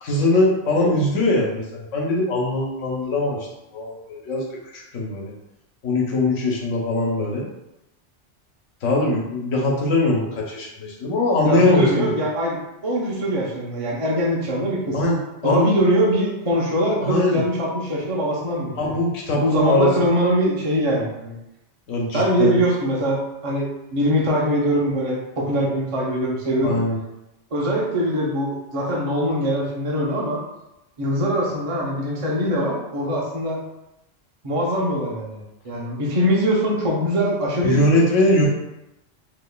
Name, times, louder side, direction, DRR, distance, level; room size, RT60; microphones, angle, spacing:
voice 1, 0.0-3.5 3.7-4.4 4.7-5.3 5.8-7.5 8.8-12.1 14.9-15.7 17.0-17.4 18.8-20.1 21.9-22.6 26.6-27.0 37.6-38.5, left 2 dB, 85° left, -2 dB, 1.2 m, -21 dB
voice 2, 11.4-12.6 12.8-15.0 15.4-18.9 19.4-21.4 22.1-26.8 27.5-30.4 31.0-33.6 34.4-37.9 38.4-38.5, equal, 35° right, -4 dB, 0.7 m, -22 dB
3.7 x 2.9 x 2.3 m, 0.89 s
omnidirectional pair, 1.3 m